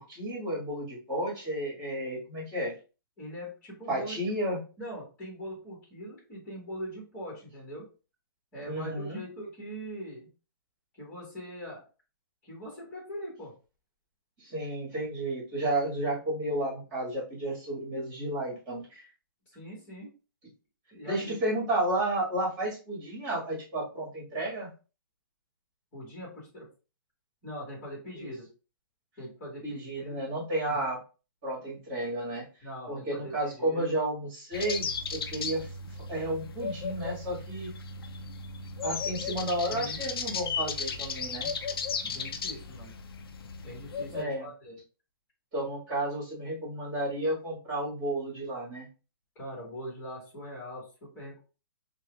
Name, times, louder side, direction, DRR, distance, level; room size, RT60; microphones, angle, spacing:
voice 1, 0.1-2.7 3.9-4.6 8.6-9.2 14.4-19.0 21.0-24.7 28.1-28.3 29.6-31.0 31.4-32.4 32.9-35.7 36.1-37.7 38.8-41.5 44.1-44.5 45.5-48.9, right 1 dB, 20° right, -4 dB, 1.9 m, -32 dB
voice 2, 3.2-4.3 4.8-7.9 8.5-10.3 10.9-11.8 12.4-13.5 19.5-20.1 20.9-21.6 25.9-26.7 27.4-28.5 29.2-30.2 30.7-30.9 32.6-33.9 39.7-40.0 42.0-42.9 43.6-44.8 49.3-51.4, equal, 15° left, -3 dB, 1.7 m, -42 dB
sound 1, 34.5-44.2, left 5 dB, 85° left, 0.5 m, -35 dB
6.0 x 2.4 x 2.4 m, 0.34 s
hypercardioid pair, 175°, 12 cm